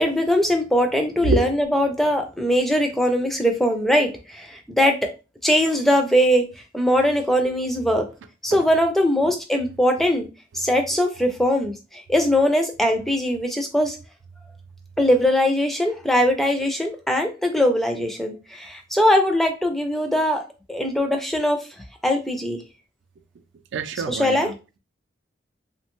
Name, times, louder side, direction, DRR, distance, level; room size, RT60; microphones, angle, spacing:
voice 1, 0.0-5.0 5.4-6.5 6.7-8.1 8.4-10.3 10.5-14.0 15.0-20.4 20.7-21.6 22.0-22.6 24.1-24.5, equal, ahead, 0.3 m, -21 dB
voice 2, 23.7-24.8, right 3 dB, 70° right, 0.4 m, -26 dB
3.0 x 2.2 x 2.9 m
head